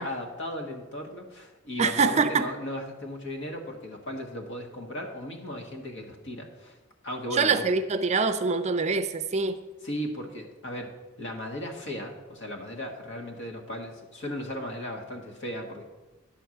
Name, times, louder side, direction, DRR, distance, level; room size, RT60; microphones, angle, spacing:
voice 1, 0.0-6.8 7.0-7.6 9.8-15.8, equal, 60° left, 3 dB, 1.5 m, -36 dB
voice 2, 1.8-2.5 7.3-9.6, right 4 dB, 35° right, 10 dB, 0.5 m, -24 dB
10.5 x 4.5 x 7.6 m, 1.1 s
head